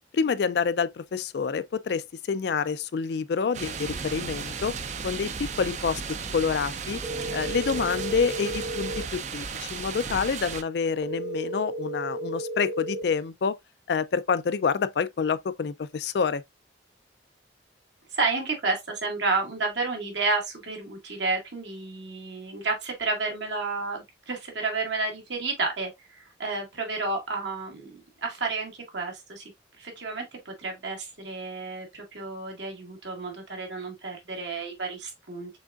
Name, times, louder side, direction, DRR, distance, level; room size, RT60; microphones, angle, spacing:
voice 1, 0.1-4.8 5.0-6.0 6.3-7.0 7.3-13.6 13.9-16.4, left 5 dB, 60° left, 0.4 m, -27 dB
sound 1, 3.5-10.6, right 5 dB, 40° right, 0.5 m, -35 dB
sound 2, 7.0-9.0 11.0-13.0, right 1 dB, 25° right, 0.9 m, -33 dB
voice 2, 18.1-29.5 29.8-35.5, right 3 dB, 70° right, 1.8 m, -31 dB
6.2 x 3.6 x 2.4 m
head